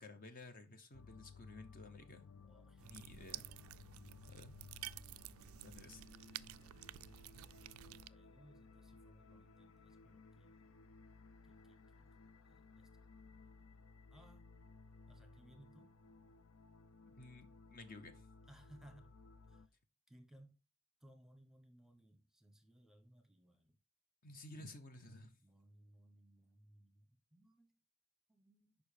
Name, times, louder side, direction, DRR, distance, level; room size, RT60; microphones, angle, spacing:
voice 1, 0.0-2.2 2.8-3.5 4.3-4.5 5.6-6.0 17.2-18.3 24.2-25.4, left 2 dB, 40° left, 0.8 m, -54 dB
sound 1, 0.9-19.7, left 4 dB, 80° left, 0.5 m, -60 dB
voice 2, 2.4-2.9 4.5-5.1 5.7-6.9 7.3-7.5 7.8-10.7 11.4-12.2 12.5-12.9 14.1-14.5 15.1-15.9 18.5-19.1 19.4-19.7 20.1-20.6 21.0-23.8 25.4-27.8 28.3-28.8, right 1 dB, ahead, 1.0 m, -65 dB
sound 2, 2.8-8.1, right 14 dB, 80° right, 0.3 m, -52 dB
7.0 x 5.2 x 5.0 m
head